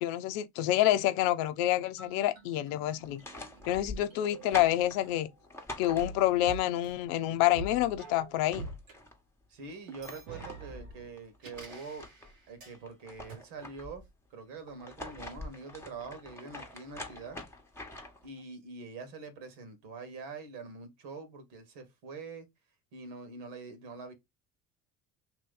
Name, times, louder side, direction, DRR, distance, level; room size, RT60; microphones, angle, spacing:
voice 1, 0.0-3.2 3.7-5.3 5.8-8.7, left 14 dB, 65° left, 0.7 m, -28 dB
sound 1, 2.0-5.5 6.0-9.0 9.9-12.8 13.3-13.4, right 3 dB, 85° right, 1.6 m, -47 dB
sound 2, 3.0-6.5 8.0-8.1 8.3-9.2 9.7-12.3 12.7-14.1 14.7-18.3, left 1 dB, 5° left, 1.1 m, -45 dB
voice 2, 9.5-12.1 12.5-14.0 14.3-17.4 18.2-22.5 22.9-24.1, right 4 dB, 70° right, 1.6 m, -44 dB
3.1 x 2.8 x 3.8 m
hypercardioid pair, 70°, 39 cm